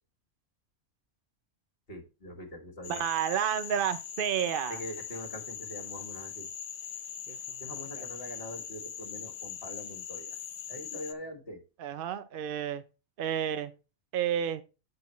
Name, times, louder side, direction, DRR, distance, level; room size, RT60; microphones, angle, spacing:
voice 1, 1.9-3.0 4.7-6.5 7.6-10.4 10.7-11.6, equal, 45° left, 1.8 m, -43 dB
Frog, 2.8-11.1, left 9 dB, 60° left, 0.6 m, -41 dB
voice 2, 2.9-4.8 7.3-7.4 8.0-8.1 11.8-12.8 13.2-13.7 14.1-14.6, right 9 dB, 60° right, 0.6 m, -30 dB
10.5 x 5.3 x 3.1 m
omnidirectional pair, 1.5 m